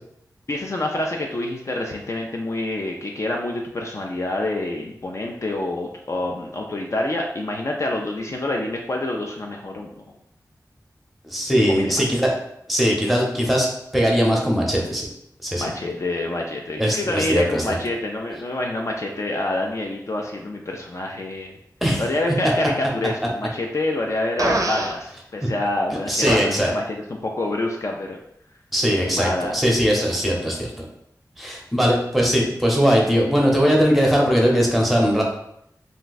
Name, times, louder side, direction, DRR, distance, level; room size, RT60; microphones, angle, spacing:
voice 1, 0.5-10.0 11.7-12.1 15.5-21.6 22.0-28.2 29.1-29.5, left 1 dB, 45° left, 0 dB, 0.4 m, -27 dB
voice 2, 11.2-12.3 12.7-13.7 13.9-15.0 15.4-15.7 16.8-17.8 21.8-22.0 25.4-25.5 26.1-26.7 28.7-30.8 31.4-35.2, equal, ahead, -2 dB, 0.7 m, -20 dB
Fart, 24.4-25.0 26.3-26.4, right 2 dB, 55° right, 0.4 m, -23 dB
2.5 x 2.2 x 3.9 m, 0.75 s
wide cardioid pair, 70°, 7 cm